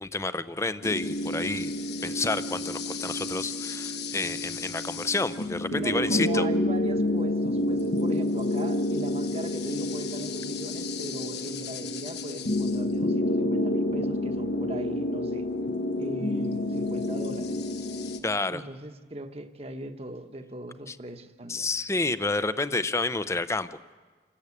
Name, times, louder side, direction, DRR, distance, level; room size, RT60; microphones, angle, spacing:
voice 1, 0.0-1.7 2.0-6.5 18.2-18.6 20.9-21.0 21.5-23.8, left 3 dB, 15° left, 0.6 m, -29 dB
sound 1, 0.8-18.2, left 1 dB, 70° left, 1.4 m, -29 dB
voice 2, 5.7-15.5 16.0-17.6 18.5-21.7, right 1 dB, 35° right, 1.1 m, -39 dB
29.0 x 13.0 x 8.5 m
head